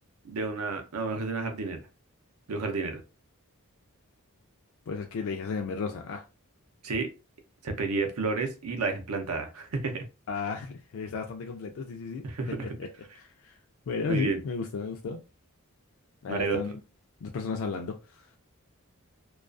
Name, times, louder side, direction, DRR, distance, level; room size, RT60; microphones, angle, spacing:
voice 1, 0.2-1.8 2.5-3.0 6.8-7.1 7.6-10.0 12.2-12.7 14.1-14.4 16.3-16.6, right 3 dB, 80° right, 0.6 m, -31 dB
voice 2, 4.9-6.2 10.3-13.6 13.9-15.2 16.2-16.7 17.2-18.3, left 4 dB, 65° left, 0.3 m, -34 dB
2.3 x 2.3 x 2.4 m
head